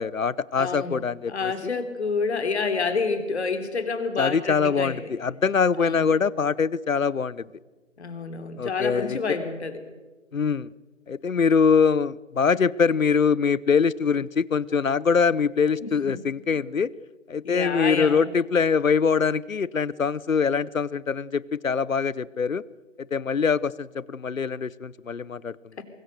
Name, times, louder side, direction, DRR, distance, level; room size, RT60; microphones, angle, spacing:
voice 1, 0.0-1.8 4.2-7.5 8.6-9.2 10.3-10.7 11.1-16.9 17.3-22.6 23.1-25.8, left 6 dB, 80° left, 22 dB, 0.8 m, -23 dB
voice 2, 0.6-5.1 5.8-6.1 8.0-9.8 15.8-16.2 17.4-18.3 25.8-25.9, left 4 dB, 55° left, 8 dB, 3.4 m, -29 dB
23.0 x 19.5 x 6.8 m, 1.3 s
figure-of-eight pair, 150°, 39 cm